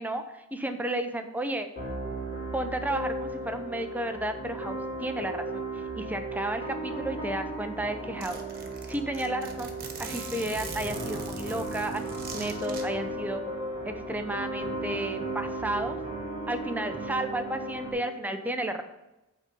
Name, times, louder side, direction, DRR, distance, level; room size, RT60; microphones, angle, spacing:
voice 1, 0.0-1.7 2.5-8.4 8.9-13.4 13.8-16.0 16.5-18.8, right 1 dB, 5° right, 7 dB, 0.5 m, -33 dB
sound 1, 1.7-17.9, right 2 dB, 45° left, 3.2 m, -35 dB
Zipper (clothing), 7.4-7.5 7.8-7.9 8.2-12.8, right 4 dB, 40° right, 1.2 m, -41 dB
9.0 x 3.8 x 6.6 m, 0.96 s
head